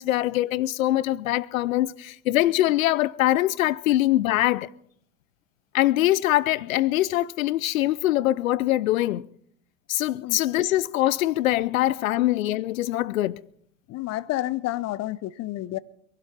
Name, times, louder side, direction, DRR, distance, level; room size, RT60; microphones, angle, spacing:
voice 1, 0.0-4.7 5.7-9.3 9.9-13.4, left 15 dB, 75° left, 0.6 m, -23 dB
voice 2, 13.9-15.8, left 16 dB, 40° left, 0.7 m, -30 dB
23.0 x 12.5 x 4.2 m
hypercardioid pair, 80°, 41 cm